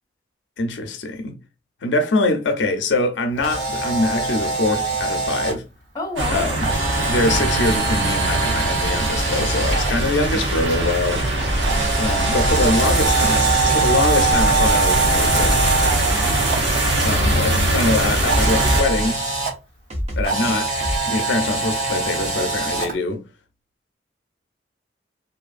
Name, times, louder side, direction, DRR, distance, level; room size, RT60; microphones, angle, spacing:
voice 1, 0.6-1.3 1.8-5.6 6.3-6.7 7.0-11.3 12.0-15.6 17.0-19.2 20.2-20.7 21.1-23.2, left 2 dB, 85° left, 0.5 m, -23 dB
Camera, 3.3-5.5 6.6-9.9 11.6-16.6 18.2-19.5 20.2-22.9, right 3 dB, 55° right, 1.5 m, -23 dB
voice 2, 5.9-6.6, left 1 dB, 20° left, 0.7 m, -31 dB
sound 1, 6.2-18.8, right 2 dB, 85° right, 0.9 m, -21 dB
sound 2, 9.6-10.6 11.4-12.0 12.5-13.5 14.3-14.8 15.4-16.4 17.2-17.8 18.3-19.2 19.9-21.0, equal, 35° right, 0.6 m, -27 dB
2.6 x 2.4 x 2.4 m
head